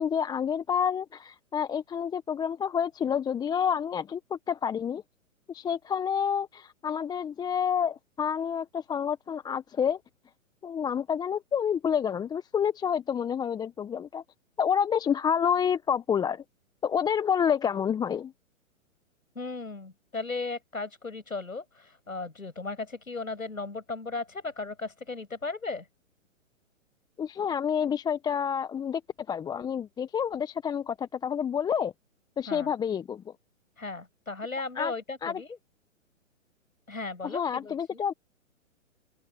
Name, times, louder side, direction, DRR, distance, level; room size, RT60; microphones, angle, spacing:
voice 1, 0.0-5.0 5.5-10.0 10.6-14.2 14.6-16.4 16.8-18.3 27.2-29.0 29.3-31.9 32.4-33.3 34.8-34.9 35.2-35.4 37.3-38.1, left 7 dB, 10° left, 1.1 m, -28 dB
voice 2, 19.4-25.9 32.5-32.7 33.8-35.6 36.9-38.0, left 3 dB, 85° left, 7.8 m, -36 dB
open air
figure-of-eight pair, 125°, 40 cm